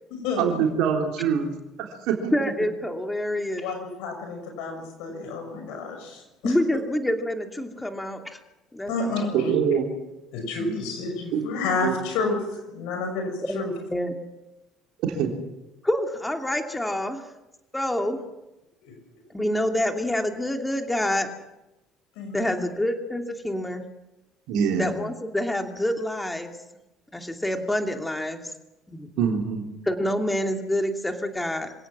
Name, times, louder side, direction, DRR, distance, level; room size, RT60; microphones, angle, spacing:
voice 1, 0.4-1.5 1.9-2.3 9.3-9.9 11.3-11.4 11.8-11.9 15.1-15.3 24.5-24.9 29.2-29.7, right 7 dB, 65° right, 2 dB, 3.7 m, -24 dB
voice 2, 2.3-3.7 6.4-8.4 8.7-9.3 13.4-13.6 13.9-14.2 15.8-17.3 17.7-18.2 19.3-21.3 22.3-23.9 24.8-26.5 27.1-28.5 28.9-29.1 29.8-31.7, left 1 dB, 10° left, 4 dB, 2.7 m, -27 dB
voice 3, 3.6-6.5 8.9-9.5 10.3-13.7 18.8-18.9 22.2-22.7, left 3 dB, 70° left, 4 dB, 6.3 m, -30 dB
26.0 x 17.0 x 6.2 m, 0.95 s
hypercardioid pair, 55°, 0 cm